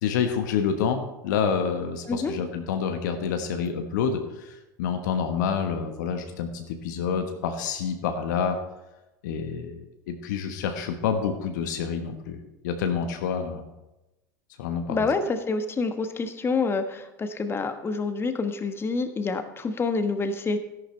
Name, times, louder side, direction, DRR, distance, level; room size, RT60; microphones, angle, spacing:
voice 1, 0.0-8.6 9.2-13.7 14.6-15.0, left 6 dB, 65° left, 6 dB, 1.2 m, -28 dB
voice 2, 14.9-20.6, left 4 dB, 25° left, 9 dB, 1.2 m, -27 dB
13.0 x 11.0 x 3.3 m, 0.99 s
hypercardioid pair, 80°, 10 cm